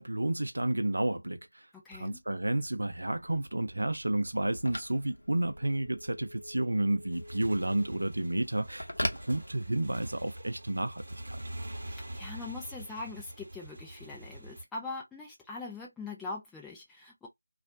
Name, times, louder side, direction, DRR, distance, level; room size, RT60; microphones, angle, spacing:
voice 1, 0.0-1.4 1.9-11.4, right 1 dB, 70° right, 0.5 m, -31 dB
voice 2, 1.8-2.2 11.9-17.3, left 3 dB, 5° left, 0.5 m, -42 dB
Telephone, 2.2-10.1, left 1 dB, 70° left, 0.7 m, -42 dB
Motorcycle / Engine, 7.0-14.6, right 1 dB, 45° right, 1.0 m, -44 dB
2.4 x 2.1 x 2.6 m
figure-of-eight pair, 165°, 0 cm